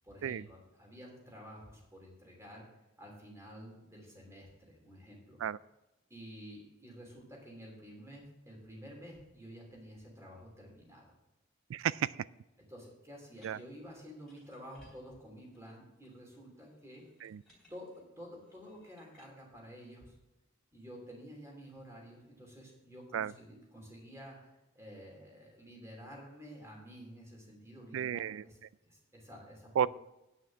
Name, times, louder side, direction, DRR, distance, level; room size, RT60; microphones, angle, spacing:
voice 1, 0.0-2.7 3.0-5.4 6.1-11.1 12.7-17.0 17.7-20.1 20.7-24.5 24.7-28.6 28.9-29.9, equal, 15° right, -1 dB, 3.0 m, -51 dB
voice 2, 11.7-12.2 13.4-13.6 17.2-17.4 23.1-23.3 27.9-28.4 29.8-29.9, right 9 dB, 75° right, 21 dB, 0.3 m, -32 dB
sound 1, 13.3-19.3, equal, ahead, 3.3 m, -68 dB
9.4 x 5.8 x 7.5 m, 0.99 s
head